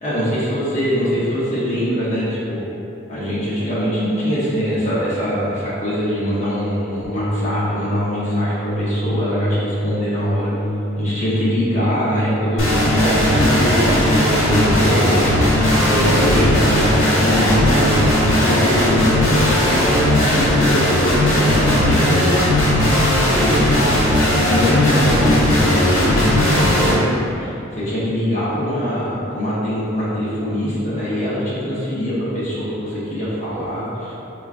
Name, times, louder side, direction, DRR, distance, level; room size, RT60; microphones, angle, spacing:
voice 1, 0.0-2.6 3.1-10.5 11.0-18.1 18.4-22.7 23.3-24.0 24.4-34.1, equal, 35° left, -10 dB, 0.8 m, -23 dB
sound 1, 7.0-20.1, equal, 15° right, 1.2 m, -25 dB
sound 2, 12.6-26.9, left 1 dB, 80° left, 1.0 m, -17 dB
4.5 x 2.5 x 2.5 m, 3.0 s
head